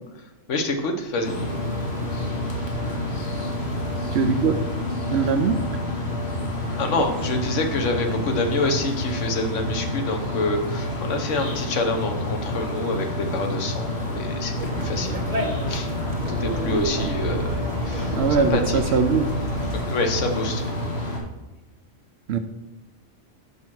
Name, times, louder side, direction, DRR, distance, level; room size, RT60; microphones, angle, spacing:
voice 1, 0.5-1.3 6.8-15.1 15.7-15.9 16.3-17.5 17.8-18.9 19.7-20.7, left 2 dB, 80° left, 4 dB, 1.3 m, -27 dB
sound 1, 1.2-21.2, left 1 dB, 60° left, 1.7 m, -28 dB
voice 2, 4.1-4.5 5.1-5.6 18.1-19.3 22.3-22.4, right 5 dB, 65° right, 8 dB, 0.9 m, -21 dB
Conversation, 14.5-19.8, equal, 30° right, 1.2 m, -31 dB
5.5 x 5.5 x 6.0 m, 1.1 s
omnidirectional pair, 1.2 m